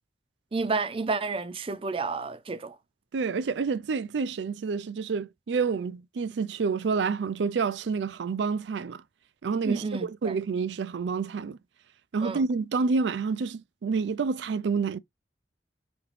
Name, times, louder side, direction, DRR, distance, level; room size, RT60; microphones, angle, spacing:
voice 1, 0.5-2.8 9.6-10.3 12.2-12.4, right 4 dB, 30° right, 0.5 m, -30 dB
voice 2, 3.1-9.0 9.4-11.6 12.1-15.0, right 5 dB, 85° right, 0.4 m, -28 dB
5.2 x 2.9 x 3.1 m
head